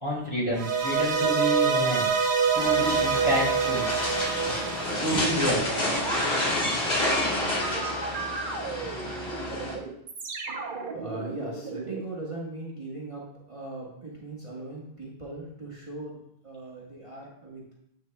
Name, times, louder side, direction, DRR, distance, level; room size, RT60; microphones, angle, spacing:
voice 1, 0.0-2.1 2.5-3.9 5.0-5.6, equal, 30° left, -4 dB, 2.0 m, -28 dB
sound 1, 0.5-5.8, right 6 dB, 85° right, 1.1 m, -26 dB
sound 2, 2.5-9.7, left 1 dB, 80° left, 1.8 m, -29 dB
voice 2, 4.4-5.5 10.9-17.7, right 2 dB, 30° right, -5 dB, 1.2 m, -39 dB
sound 3, 5.4-6.5 7.6-12.0, right 4 dB, 60° right, 0.9 m, -35 dB
7.9 x 6.0 x 2.2 m, 0.72 s
omnidirectional pair, 1.1 m